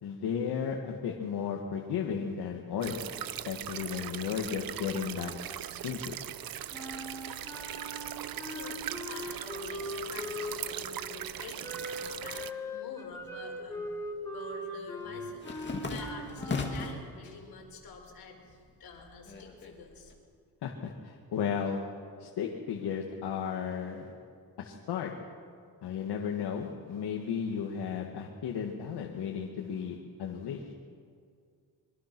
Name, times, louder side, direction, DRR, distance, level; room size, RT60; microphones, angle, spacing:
voice 1, 0.0-3.0 3.3-5.3 5.8-6.2 20.6-21.8 22.2-24.1 24.6-25.1 25.8-30.7, left 7 dB, 80° left, 1 dB, 1.9 m, -34 dB
sound 1, 2.8-12.5, right 11 dB, 60° right, 0.8 m, -40 dB
Wind instrument woodwind instrument, 6.7-10.9 11.6-17.0, left 1 dB, 10° left, 2.2 m, -40 dB
voice 2, 8.5-13.9 14.3-20.1, left 4 dB, 60° left, 1 dB, 4.7 m, -48 dB
sound 2, 13.1-13.9 14.2-17.1 17.5-18.2 18.5-20.1, left 4 dB, 25° left, 2.3 m, -38 dB
25.0 x 23.0 x 6.1 m, 2.2 s
wide cardioid pair, 165°, 40 cm